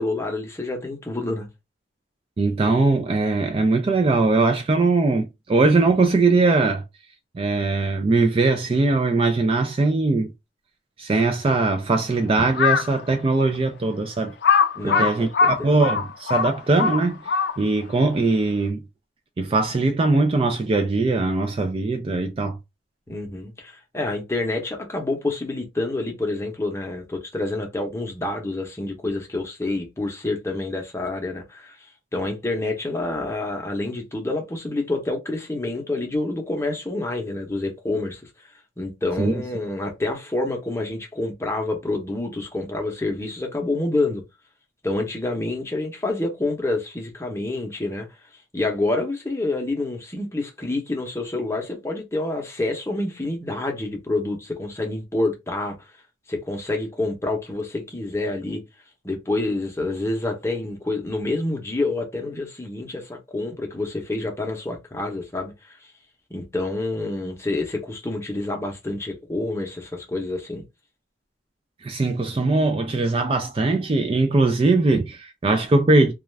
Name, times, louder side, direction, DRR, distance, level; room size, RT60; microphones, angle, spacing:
voice 1, 0.0-1.5 14.7-15.7 23.1-38.3 38.8-44.2 44.8-48.1 48.5-55.9 56.3-58.6 59.0-65.9 66.3-70.6, left 2 dB, 15° left, 0.7 m, -28 dB
voice 2, 2.4-6.8 7.3-10.3 11.0-14.3 14.8-18.8 19.4-22.6 39.2-39.3 71.8-76.1, right 3 dB, 30° right, 0.3 m, -21 dB
Crow, 12.5-13.0 13.5-13.6 14.4-17.8, left 6 dB, 60° left, 0.4 m, -21 dB
2.4 x 2.3 x 3.2 m
head